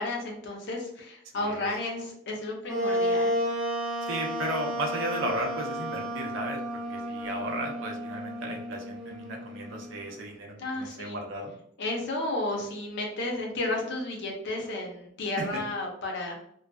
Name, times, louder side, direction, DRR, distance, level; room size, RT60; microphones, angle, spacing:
voice 1, 0.0-3.4 10.6-11.2 11.8-16.5, left 2 dB, 55° left, 1 dB, 0.6 m, -32 dB
voice 2, 1.3-1.7 4.0-11.5 15.4-15.5, right 1 dB, 65° right, 2 dB, 0.5 m, -35 dB
Wind instrument woodwind instrument, 2.7-10.1, equal, ahead, 0.6 m, -32 dB
2.5 x 2.2 x 2.2 m, 0.71 s
head